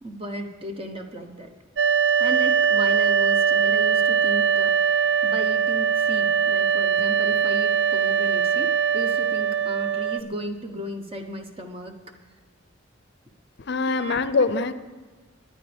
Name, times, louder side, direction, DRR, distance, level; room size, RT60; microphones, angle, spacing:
voice 1, 0.0-1.5 2.2-12.0 13.9-14.2 14.5-14.7, right 1 dB, 30° right, 5 dB, 1.1 m, -35 dB
sound 1, 1.8-10.2, right 7 dB, 65° right, 0.5 m, -21 dB
voice 2, 13.6-14.7, left 4 dB, 60° left, 13 dB, 0.5 m, -23 dB
21.5 x 9.8 x 3.5 m, 1.3 s
head